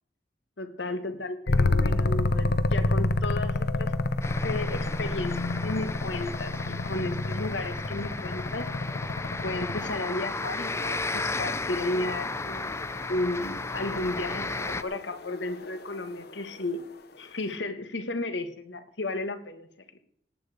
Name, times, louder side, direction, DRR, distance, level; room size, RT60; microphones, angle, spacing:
voice 1, 0.6-3.9 4.4-8.7 9.4-12.7 13.1-16.9 17.2-19.7, left 2 dB, 80° left, 9 dB, 1.5 m, -33 dB
sound 1, 1.5-10.0 12.3-16.8, left 2 dB, 60° left, 0.8 m, -29 dB
sound 2, 4.2-14.8, left 3 dB, 15° left, 0.5 m, -34 dB
18.0 x 8.9 x 5.0 m, 0.70 s
head